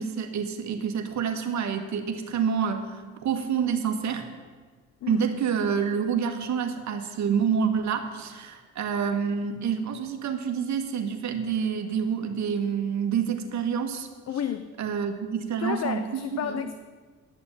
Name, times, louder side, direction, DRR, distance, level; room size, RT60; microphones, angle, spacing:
voice 1, 0.0-4.3 5.1-14.1 14.8-16.6, right 7 dB, 65° right, 1.5 m, -28 dB
voice 2, 14.3-14.7 15.6-16.8, left 9 dB, 60° left, 0.7 m, -31 dB
10.5 x 7.0 x 9.3 m
cardioid pair, 90°, 30 cm